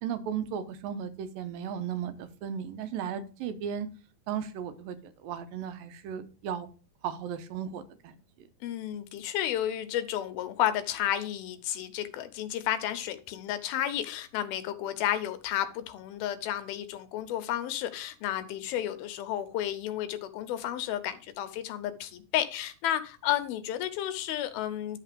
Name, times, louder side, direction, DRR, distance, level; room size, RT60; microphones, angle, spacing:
voice 1, 0.0-3.9 4.3-6.7 7.0-8.5, right 8 dB, 80° right, 10 dB, 2.6 m, -36 dB
voice 2, 8.6-25.0, left 11 dB, 90° left, 10 dB, 2.7 m, -32 dB
11.0 x 3.7 x 6.7 m, 0.35 s
omnidirectional pair, 4.2 m